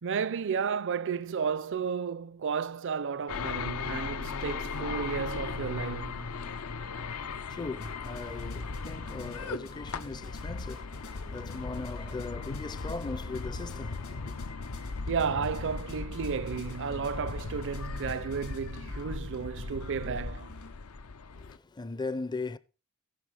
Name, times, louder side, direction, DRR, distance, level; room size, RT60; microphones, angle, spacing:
voice 1, 0.0-6.3 15.1-20.5, right 6 dB, 60° right, 0.5 m, -33 dB
sound 1, 3.3-21.6, left 4 dB, 85° left, 0.6 m, -38 dB
voice 2, 7.2-14.4 21.3-22.6, left 3 dB, 20° left, 0.4 m, -39 dB
sound 2, 7.8-20.7, left 2 dB, 70° left, 2.4 m, -49 dB
15.5 x 5.6 x 4.8 m
head